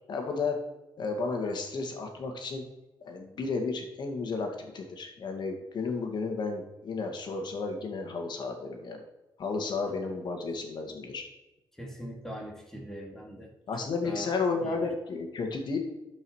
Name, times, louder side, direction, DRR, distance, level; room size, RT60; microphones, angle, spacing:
voice 1, 0.1-0.6 1.0-2.6 3.0-9.0 9.4-11.2 13.7-15.8, left 4 dB, 65° left, 3 dB, 2.1 m, -32 dB
voice 2, 11.8-13.5 13.8-14.3 14.6-14.8, equal, 5° left, -1 dB, 2.7 m, -41 dB
12.0 x 5.5 x 4.8 m, 0.98 s
cardioid pair, 100°, 8 cm